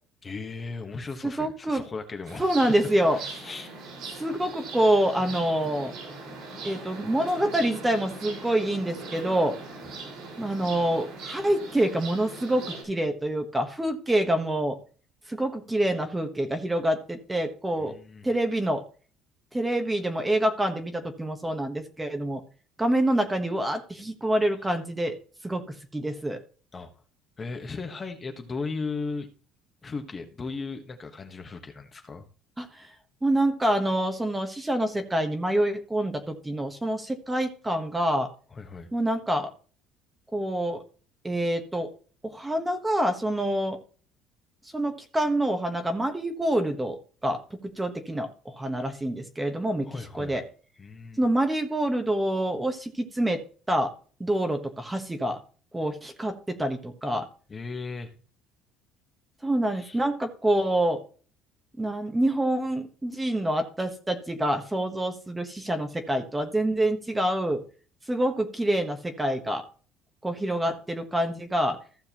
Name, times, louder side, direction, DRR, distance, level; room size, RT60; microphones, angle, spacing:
voice 1, 0.2-2.5 3.1-3.7 17.8-18.3 26.7-26.9 27.4-29.3 29.8-32.2 38.5-38.9 49.8-50.4 50.8-51.2 57.5-58.1 59.7-60.0, left 4 dB, 25° left, 5 dB, 1.3 m, -36 dB
voice 2, 1.2-1.8 2.4-3.2 4.1-5.9 6.6-9.6 10.4-14.8 15.3-17.9 18.2-18.8 19.5-22.4 22.8-25.1 25.4-26.4 32.6-32.9 33.2-38.3 38.9-39.5 40.3-40.8 41.2-41.9 42.2-43.8 44.7-47.4 47.8-50.4 51.2-53.4 53.7-53.9 54.2-55.4 55.7-57.3 59.4-61.0 61.8-67.6 68.1-69.6 70.2-71.8, right 1 dB, 10° right, 6 dB, 1.2 m, -26 dB
sound 1, 2.2-12.8, right 3 dB, 70° right, 5.1 m, -40 dB
15.0 x 6.4 x 3.0 m, 0.39 s
cardioid pair, 115°, 0 cm